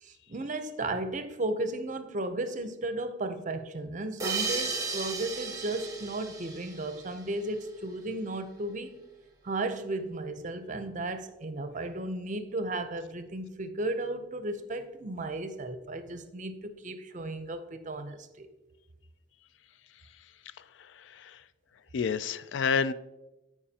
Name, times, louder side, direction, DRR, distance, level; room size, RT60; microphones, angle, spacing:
voice 1, 0.0-9.0 9.4-18.5, right 2 dB, 45° right, 0.7 m, -35 dB
sound 1, 4.2-7.5, right 4 dB, 20° right, 1.1 m, -35 dB
voice 2, 20.6-21.4 21.9-22.9, left 6 dB, 75° left, 0.4 m, -30 dB
14.0 x 4.9 x 2.8 m
head